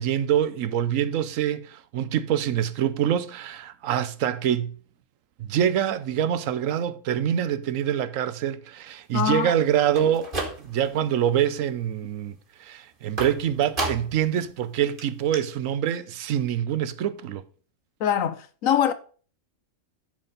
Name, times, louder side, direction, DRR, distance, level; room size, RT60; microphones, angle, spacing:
voice 1, 0.0-4.8 5.4-10.3 10.6-12.3 12.6-17.4, right 10 dB, 80° right, 1.0 m, -25 dB
voice 2, 9.1-9.5 18.0-18.9, left 9 dB, 80° left, 1.2 m, -23 dB
sound 1, 9.8-11.0 11.4-11.9 13.2-14.3 14.6-14.7 15.0-15.1 15.3-15.4, right 2 dB, 40° right, 1.8 m, -32 dB
10.5 x 4.3 x 5.1 m
omnidirectional pair, 1.4 m